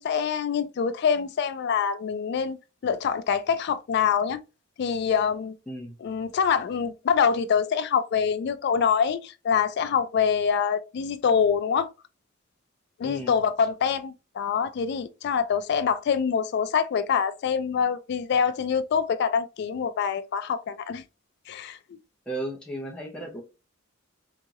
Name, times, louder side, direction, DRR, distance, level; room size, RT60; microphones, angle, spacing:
voice 1, 0.0-2.6 2.8-4.4 4.8-5.5 6.0-11.9 13.0-21.0 21.5-21.8, left 7 dB, 55° left, 0.3 m, -25 dB
voice 2, 13.0-13.4 22.3-23.4, right 1 dB, 5° left, 0.6 m, -34 dB
2.9 x 2.8 x 2.4 m
head